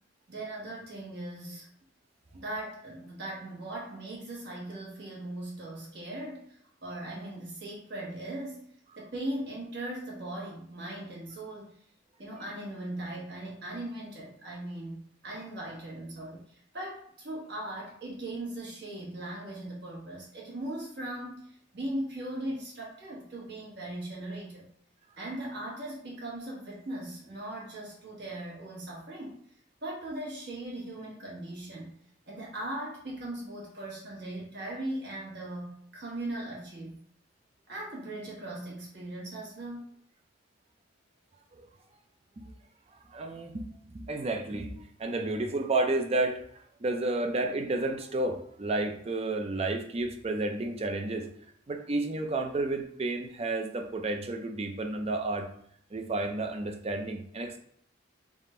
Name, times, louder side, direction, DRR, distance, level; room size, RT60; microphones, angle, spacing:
voice 1, 0.3-1.7 2.3-8.7 9.0-11.8 12.2-24.7 25.2-29.4 29.8-32.0 32.3-37.0 37.7-39.9, right 1 dB, 60° right, -4 dB, 1.4 m, -39 dB
voice 2, 43.1-43.7 43.9-44.7 45.0-46.4 46.8-51.3 51.7-55.5 55.9-57.6, right 2 dB, 30° right, 4 dB, 0.5 m, -31 dB
3.5 x 2.5 x 4.3 m, 0.64 s
head